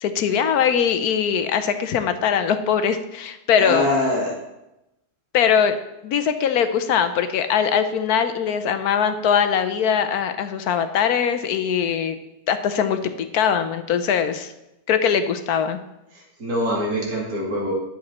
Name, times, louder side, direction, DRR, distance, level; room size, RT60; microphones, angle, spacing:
voice 1, 0.0-3.9 5.3-5.7 6.0-12.2 12.5-14.5 14.9-15.8, left 7 dB, 75° left, 9 dB, 1.3 m, -21 dB
voice 2, 3.6-4.4 16.1-17.7, left 1 dB, 70° right, -3 dB, 3.1 m, -24 dB
10.5 x 7.4 x 4.3 m, 0.91 s
omnidirectional pair, 1.6 m